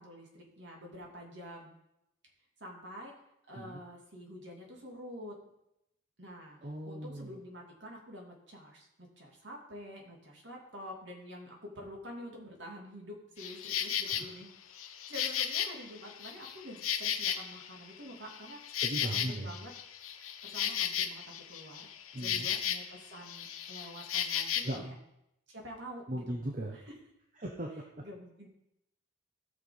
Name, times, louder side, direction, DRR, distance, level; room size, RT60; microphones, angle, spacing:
voice 1, 0.0-1.7 2.6-3.1 3.5-5.4 6.2-6.6 6.8-14.5 15.1-19.7 20.4-21.8 22.2-24.9 25.5-26.3 26.7-26.9 28.0-28.5, equal, 55° right, -1 dB, 2.8 m, -47 dB
voice 2, 6.6-7.4 14.0-14.3 18.8-19.5 22.1-22.5 24.6-25.0 26.1-26.8 27.4-28.0, right 1 dB, 40° right, 1 dB, 1.0 m, -38 dB
Insect, 13.4-14.2 14.7-17.8 18.1-23.0 23.2-24.8, left 9 dB, 85° left, 0.9 m, -35 dB
15.5 x 6.0 x 5.4 m, 0.83 s
head